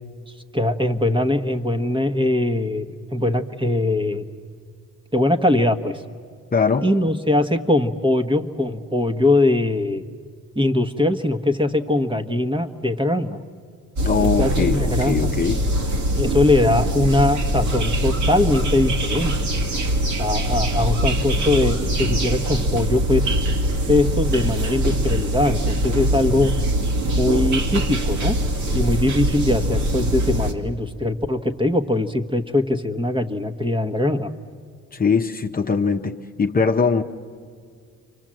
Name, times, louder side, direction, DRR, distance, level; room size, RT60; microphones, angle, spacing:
voice 1, 0.5-4.2 5.1-6.0 6.8-10.0 10.5-13.4 14.2-15.2 16.1-19.3 20.2-23.3 23.9-26.5 27.2-28.4 28.7-34.3, left 1 dB, 15° right, 8 dB, 1.3 m, -21 dB
voice 2, 6.5-6.9 14.0-15.6 34.9-37.0, left 5 dB, 30° left, 4 dB, 0.9 m, -21 dB
sound 1, 14.0-30.5, right 1 dB, 70° right, 2.5 m, -22 dB
29.5 x 24.0 x 7.6 m, 2.1 s
cardioid pair, 90°, 30 cm